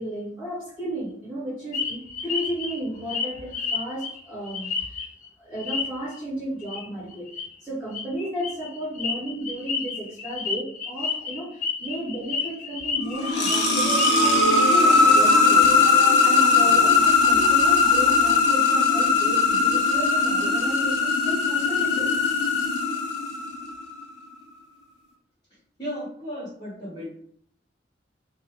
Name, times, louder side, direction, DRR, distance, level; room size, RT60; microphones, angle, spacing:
voice 1, 0.0-5.0 5.4-7.3 7.6-22.1 22.9-23.0, right 1 dB, 10° right, -13 dB, 1.1 m, -33 dB
sound 1, 1.7-5.3 5.6-6.2 6.6-6.8 7.1-7.4 7.9-14.4, left 5 dB, 45° left, 0.6 m, -31 dB
sound 2, 12.9-23.7, left 4 dB, 85° left, 0.6 m, -19 dB
voice 2, 25.8-27.1, equal, 25° left, -10 dB, 1.1 m, -34 dB
2.7 x 2.2 x 3.0 m, 0.63 s
head